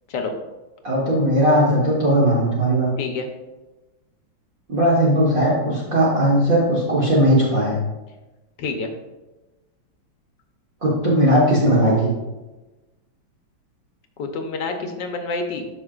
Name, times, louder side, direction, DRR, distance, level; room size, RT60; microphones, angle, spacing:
voice 1, 0.8-2.9 4.7-7.8 10.8-12.1, right 1 dB, 45° right, -6 dB, 1.8 m, -18 dB
voice 2, 3.0-3.3 8.6-8.9 14.2-15.7, left 3 dB, 65° left, 4 dB, 1.4 m, -28 dB
12.5 x 5.8 x 2.4 m, 1.1 s
omnidirectional pair, 2.3 m